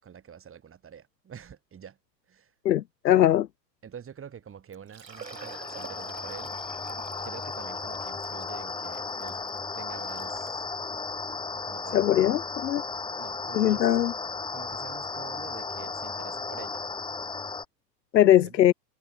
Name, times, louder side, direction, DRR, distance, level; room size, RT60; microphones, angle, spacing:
voice 1, 0.0-2.0 2.3-2.5 3.8-6.5 7.2-9.4 9.7-10.7 11.6-12.1 13.2-14.0 14.5-16.8 18.3-18.6, right 8 dB, 25° right, 6.6 m, -46 dB
voice 2, 2.6-3.5 11.9-12.8 13.5-14.1 18.1-18.7, left 12 dB, 80° left, 0.7 m, -21 dB
Liquid, 4.3-4.4 4.7-10.6 11.3-11.4 11.9-12.0 13.6-13.7 13.9-14.0, right 7 dB, 80° right, 7.3 m, -48 dB
sound 1, 5.1-17.6, left 4 dB, 10° left, 1.1 m, -35 dB
figure-of-eight pair, 85°, 49 cm